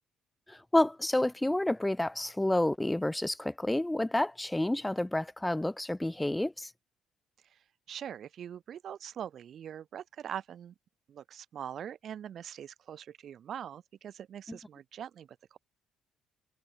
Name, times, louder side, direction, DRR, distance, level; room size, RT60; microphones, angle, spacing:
voice 1, 0.5-6.7 14.5-14.6, left 1 dB, 10° left, 1.0 m, -29 dB
voice 2, 7.9-10.7 11.1-15.6, right 9 dB, 60° right, 2.0 m, -42 dB
hypercardioid pair, 50°, 0 cm